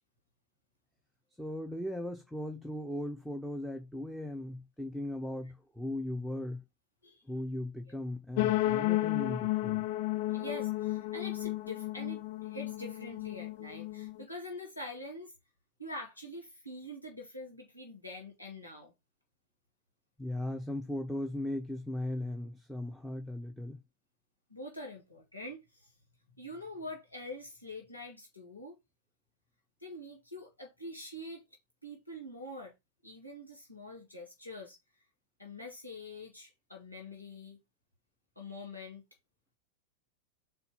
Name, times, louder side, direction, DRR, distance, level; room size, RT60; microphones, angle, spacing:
voice 1, 1.4-6.6 7.2-9.9 20.2-23.8, left 1 dB, ahead, 0.9 m, -38 dB
sound 1, 8.4-14.2, left 16 dB, 50° left, 0.4 m, -32 dB
voice 2, 10.0-15.3 15.8-18.9 24.5-25.9 26.3-28.7 29.8-31.4 31.8-32.7 33.0-34.8 35.4-37.6 38.3-39.0, left 1 dB, 85° left, 1.6 m, -45 dB
4.4 x 4.3 x 5.6 m
figure-of-eight pair, 90°, 0 cm